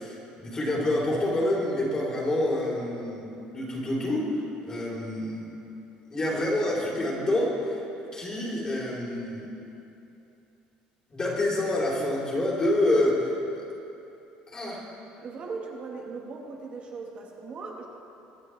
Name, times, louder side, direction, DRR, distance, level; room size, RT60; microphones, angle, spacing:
voice 1, 0.0-4.3 4.7-5.5 6.1-7.8 8.1-9.5 11.1-13.6 14.5-14.8, left 1 dB, 25° left, -5 dB, 3.4 m, -27 dB
voice 2, 15.2-17.9, right 4 dB, 40° right, 0 dB, 1.5 m, -38 dB
23.5 x 9.5 x 3.3 m, 2.8 s
cardioid pair, 125°, 3 cm